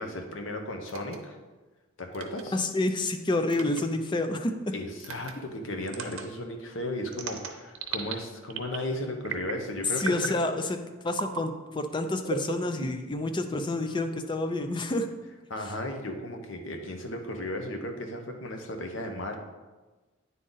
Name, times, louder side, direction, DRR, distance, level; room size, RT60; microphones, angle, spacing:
voice 1, 0.0-1.4 2.0-2.6 4.7-10.3 15.5-19.4, left 1 dB, 70° left, 4 dB, 0.9 m, -35 dB
sound 1, 0.9-1.2 2.1-2.4 3.5-3.8 5.0-5.3 5.9-6.2 7.1-8.1 8.5-8.9 9.2-9.6 10.0-10.4 11.1-11.4 12.2-13.1, right 6 dB, 90° right, 0.7 m, -35 dB
voice 2, 2.5-4.7 10.0-10.8 11.0-15.1, left 2 dB, 25° left, 7 dB, 0.4 m, -29 dB
9.3 x 3.8 x 3.9 m, 1.2 s
head